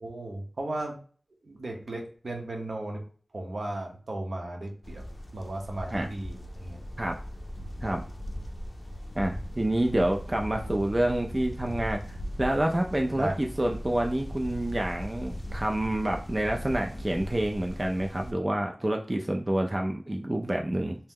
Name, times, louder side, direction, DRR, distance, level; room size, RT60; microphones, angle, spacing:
voice 1, 0.0-1.0 1.4-3.0 3.3-5.0 5.3-6.8 13.2-13.3, right 1 dB, 70° right, 1 dB, 0.7 m, -35 dB
sound 1, 4.8-18.3, equal, 35° left, 0.5 m, -39 dB
voice 2, 9.2-21.0, right 1 dB, 30° right, 2 dB, 0.3 m, -28 dB
2.7 x 2.1 x 3.5 m, 0.42 s
wide cardioid pair, 60°, 0 cm